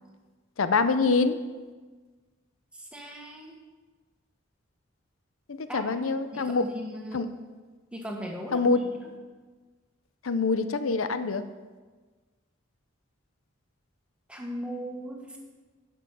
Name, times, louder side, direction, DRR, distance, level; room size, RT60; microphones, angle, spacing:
voice 1, 0.6-1.4 5.5-6.6 7.1-7.3 8.5-8.8 10.2-11.4, left 4 dB, 80° left, 11 dB, 0.6 m, -25 dB
voice 2, 2.7-3.5 5.7-6.0 6.3-7.3 7.9-8.7 14.3-15.4, equal, 5° right, 0 dB, 1.4 m, -38 dB
12.0 x 6.1 x 6.0 m, 1.4 s
head